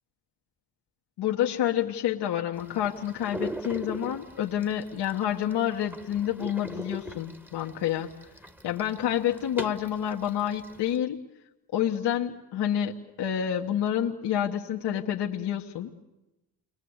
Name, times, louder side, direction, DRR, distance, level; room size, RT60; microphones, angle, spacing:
voice 1, 1.2-8.1 8.6-11.2 11.7-16.0, left 10 dB, 65° left, 0 dB, 1.5 m, -28 dB
sound 1, 2.5-11.0, right 1 dB, 5° right, 1.5 m, -42 dB
29.5 x 22.0 x 8.1 m, 1.0 s
supercardioid pair, 60°, 43 cm